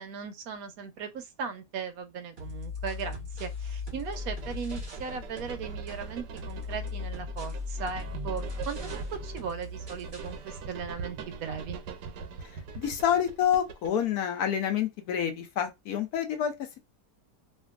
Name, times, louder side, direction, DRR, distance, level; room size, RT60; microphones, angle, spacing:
voice 1, 0.0-11.8, right 6 dB, 70° right, 1.0 m, -38 dB
sound 1, 2.4-5.1 5.4-10.4, left 3 dB, 40° right, 0.9 m, -38 dB
sound 2, 4.1-14.1, right 4 dB, 85° right, 1.3 m, -42 dB
voice 2, 12.8-16.5, left 9 dB, 70° left, 1.1 m, -28 dB
2.9 x 2.5 x 2.3 m
omnidirectional pair, 1.8 m